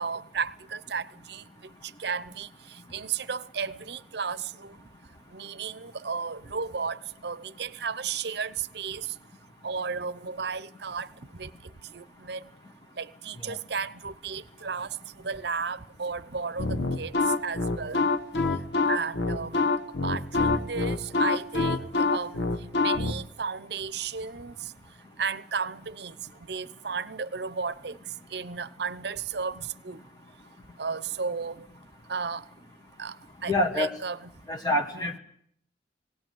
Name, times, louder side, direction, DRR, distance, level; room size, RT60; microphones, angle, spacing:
voice 1, 0.0-1.4 1.8-4.7 5.3-9.1 9.6-12.4 13.0-17.2 17.4-18.0 18.9-19.6 20.0-22.4 22.8-24.7 25.2-26.2 26.5-30.0 30.8-31.7 32.1-32.4 33.0-33.2 33.4-34.2, right 5 dB, 65° right, 0.8 m, -34 dB
sound 1, 16.6-23.1, left 3 dB, 75° left, 1.4 m, -25 dB
voice 2, 33.5-33.9 34.5-35.2, left 1 dB, 20° left, 1.6 m, -26 dB
19.0 x 18.0 x 9.4 m
head